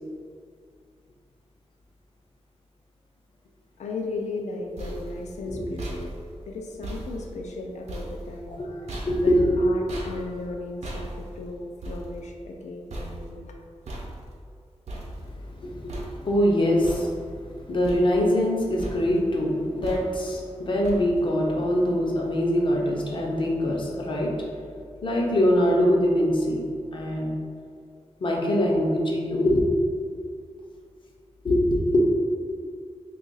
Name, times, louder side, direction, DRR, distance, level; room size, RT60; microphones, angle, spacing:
voice 1, 3.8-6.1 6.5-13.5, left 2 dB, 90° left, 1 dB, 0.4 m, -36 dB
sound 1, 4.4-15.6 15.9-16.5 16.8-17.5 17.8-18.5 18.8-19.3 19.8-20.4 20.8-21.4, right 1 dB, 70° right, 0.7 m, -39 dB
voice 2, 9.1-9.6 15.6-17.1 17.7-24.3 25.0-26.6 26.9-27.3 28.2-29.7 31.4-32.0, equal, 45° left, -2 dB, 0.6 m, -23 dB
2.9 x 2.4 x 3.9 m, 2.2 s
wide cardioid pair, 120°, 12 cm